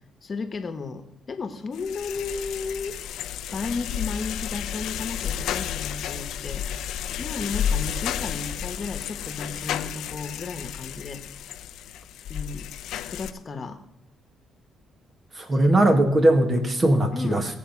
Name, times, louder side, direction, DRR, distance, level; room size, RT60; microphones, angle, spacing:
voice 1, 0.2-3.0 3.5-6.7 7.2-11.2 12.3-12.7 13.1-13.8 15.5-15.8 17.1-17.5, left 4 dB, 40° left, 9 dB, 1.3 m, -34 dB
sound 1, 1.7-13.3, left 9 dB, 85° left, 0.6 m, -32 dB
voice 2, 15.4-17.5, right 1 dB, 35° right, 6 dB, 2.1 m, -20 dB
18.0 x 7.3 x 5.9 m, 0.85 s
cardioid pair, 90°, 0 cm